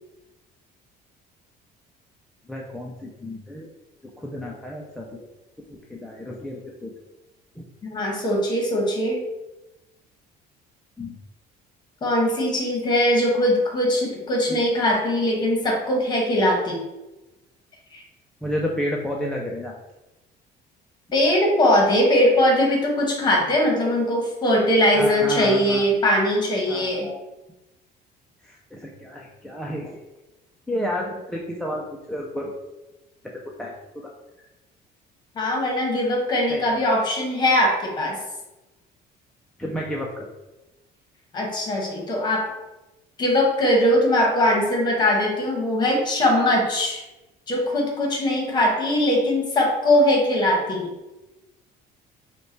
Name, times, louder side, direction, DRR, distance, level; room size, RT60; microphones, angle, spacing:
voice 1, 2.5-3.7 4.2-5.3 5.7-6.9 7.6-7.7 11.0-11.2 14.5-14.6 18.4-19.8 24.9-25.8 26.7-27.2 28.4-30.0 30.7-32.5 33.6-33.7 36.5-36.7 39.6-40.3, equal, 5° left, -2 dB, 0.3 m, -31 dB
voice 2, 7.8-9.2 12.0-16.8 17.9-18.0 21.1-27.1 35.3-38.2 41.3-42.5 43.2-47.0 47.5-50.9, left 1 dB, 25° left, 0 dB, 1.0 m, -21 dB
5.3 x 2.2 x 4.5 m, 1.0 s
cardioid pair, 175°, 17 cm